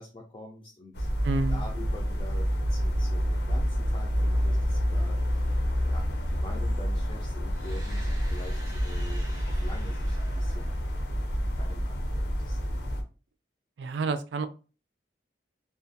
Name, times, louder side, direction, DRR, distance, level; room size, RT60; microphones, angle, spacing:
voice 1, 0.0-1.1 1.5-10.8 11.6-12.6, left 1 dB, 25° left, -1 dB, 0.3 m, -45 dB
sound 1, 0.9-13.0, equal, 70° left, 0.6 m, -28 dB
voice 2, 1.2-1.6 13.8-14.5, right 3 dB, 80° right, 10 dB, 0.3 m, -29 dB
sound 2, 7.5-11.4, right 1 dB, 20° right, 0.7 m, -50 dB
2.4 x 2.2 x 2.6 m, 0.34 s
head